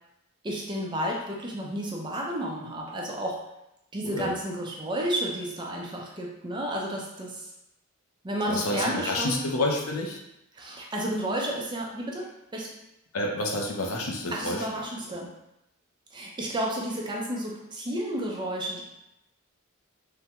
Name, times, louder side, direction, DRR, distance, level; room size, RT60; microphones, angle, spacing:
voice 1, 0.4-3.4 3.9-7.5 8.2-9.4 10.5-12.7 14.3-15.3 16.1-18.8, right 1 dB, 20° right, -2 dB, 0.5 m, -31 dB
voice 2, 8.5-10.2 13.1-14.6, left 1 dB, 70° left, 1 dB, 0.5 m, -29 dB
3.4 x 2.2 x 2.9 m, 0.86 s
head